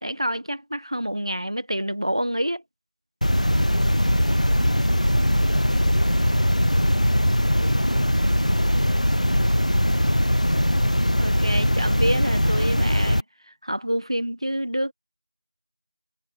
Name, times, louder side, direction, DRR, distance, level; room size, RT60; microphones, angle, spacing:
voice 1, 0.0-2.6 11.2-14.9, equal, 50° right, 1.4 m, -27 dB
sound 1, 3.2-13.2, equal, 90° left, 0.8 m, -21 dB
sound 2, 3.2-10.4, right 1 dB, 25° right, 3.5 m, -34 dB
voice 2, 3.6-10.8, left 1 dB, 25° left, 1.6 m, -46 dB
figure-of-eight pair, 175°, 4 cm